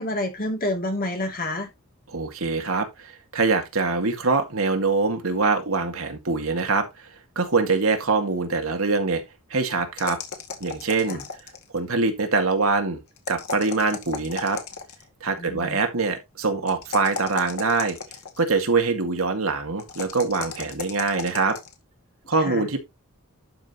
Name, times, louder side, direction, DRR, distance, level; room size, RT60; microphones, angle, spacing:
voice 1, 0.0-1.7 11.1-11.2 15.4-15.8 22.4-22.7, left 1 dB, 40° left, 2.6 m, -28 dB
voice 2, 2.1-6.9 7.4-9.2 9.5-10.2 10.6-11.2 11.7-13.0 13.3-14.6 15.2-18.0 18.4-21.6 22.3-22.8, right 3 dB, 65° right, 2.0 m, -24 dB
sound 1, 10.0-11.8 13.2-15.1 16.7-18.5 19.8-21.7, left 4 dB, 80° left, 2.0 m, -35 dB
11.5 x 5.5 x 2.9 m
head